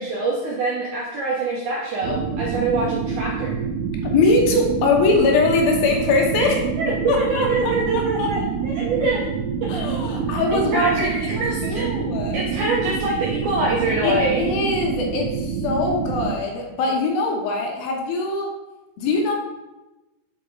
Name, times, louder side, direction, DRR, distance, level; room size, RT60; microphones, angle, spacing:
voice 1, 0.0-3.5 6.8-9.2 10.7-11.9 12.3-14.5, right 2 dB, 75° right, -3 dB, 1.8 m, -24 dB
sound 1, 2.0-16.4, right 6 dB, 90° right, 2.7 m, -27 dB
voice 2, 4.1-6.6 7.1-8.3 9.7-11.2 11.6-12.4 14.0-18.5 19.0-19.3, left 3 dB, 75° left, 1 dB, 2.6 m, -22 dB
8.3 x 4.6 x 4.5 m, 1.1 s
omnidirectional pair, 4.7 m